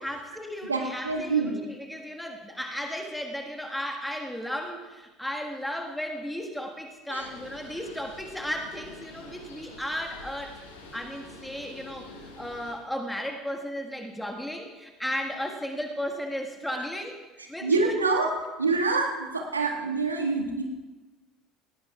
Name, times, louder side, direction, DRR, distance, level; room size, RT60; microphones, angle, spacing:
voice 1, 0.0-10.6 10.9-17.2 17.5-17.9, equal, 5° left, 2 dB, 1.6 m, -35 dB
voice 2, 0.7-1.6 7.1-7.3 17.6-18.3 18.6-20.6, right 4 dB, 85° right, 1 dB, 1.8 m, -26 dB
Bird, 7.2-12.7, left 2 dB, 80° left, 5.5 m, -47 dB
19.5 x 17.0 x 2.4 m, 1.2 s
figure-of-eight pair, 65°, 0 cm